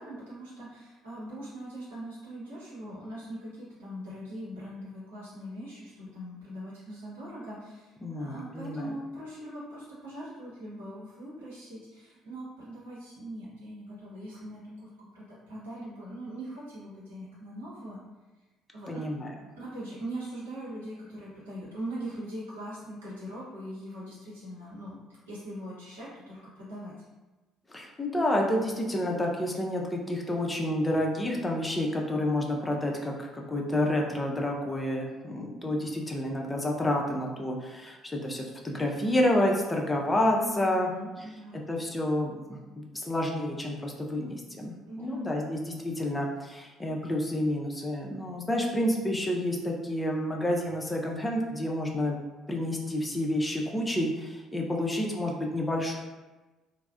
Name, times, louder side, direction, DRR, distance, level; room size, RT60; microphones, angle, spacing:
voice 1, 0.0-18.0 18.7-19.0 19.6-25.0 25.3-27.1 40.4-41.7 44.9-45.3, right 1 dB, 80° right, -8 dB, 0.8 m, -41 dB
voice 2, 8.0-8.9 18.9-19.3 27.7-40.9 41.5-52.2 52.5-56.0, left 1 dB, 20° left, 0 dB, 0.5 m, -29 dB
3.1 x 2.0 x 2.3 m, 1.2 s
figure-of-eight pair, 50°, 0 cm